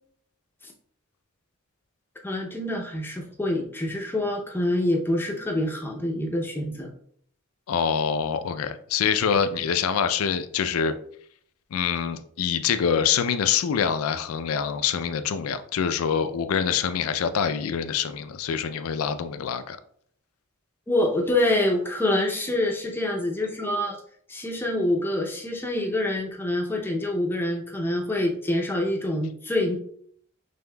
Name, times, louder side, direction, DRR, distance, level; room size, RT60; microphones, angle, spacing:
voice 1, 2.2-6.9 20.9-24.0 24.3-29.8, left 1 dB, 10° left, 1 dB, 0.5 m, -26 dB
voice 2, 7.7-10.9 11.7-19.8, left 7 dB, 90° left, 11 dB, 0.4 m, -25 dB
5.4 x 3.4 x 2.2 m, 0.62 s
head